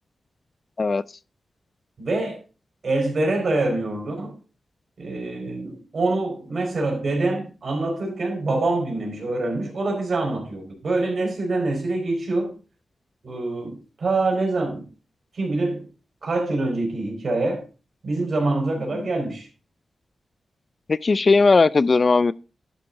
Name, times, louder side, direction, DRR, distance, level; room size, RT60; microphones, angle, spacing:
voice 1, 2.0-2.4 2.8-4.4 5.0-12.6 13.2-14.9 15.3-15.9 16.2-17.6 18.0-19.5, right 2 dB, 55° right, 4.4 m, -25 dB
voice 2, 20.9-22.3, left 4 dB, 40° left, 0.3 m, -18 dB
11.5 x 6.2 x 3.7 m
cardioid pair, 85°, 0 cm